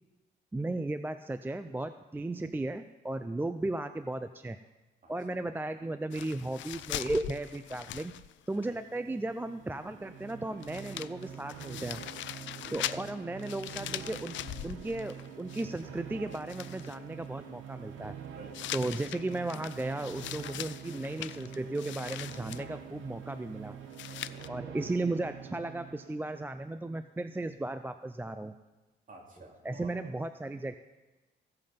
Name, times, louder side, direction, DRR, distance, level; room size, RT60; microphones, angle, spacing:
voice 1, 0.5-4.6 5.1-8.2 8.5-12.0 12.7-14.4 14.6-18.2 18.7-23.8 24.5-28.5 29.6-30.7, right 2 dB, 10° right, 10 dB, 0.4 m, -35 dB
sound 1, 6.1-8.7 9.0-9.1 10.3-10.4 10.6-16.0 16.3-17.0 18.5-22.6 23.9-24.5, left 13 dB, 70° left, 0.4 m, -41 dB
sound 2, 9.5-26.3, right 9 dB, 90° right, 1.0 m, -46 dB
voice 2, 12.3-13.3 18.2-19.1 24.1-24.5 29.1-30.2, right 2 dB, 40° right, 1 dB, 2.7 m, -52 dB
15.5 x 7.7 x 5.2 m, 1.1 s
cardioid pair, 90°, 20 cm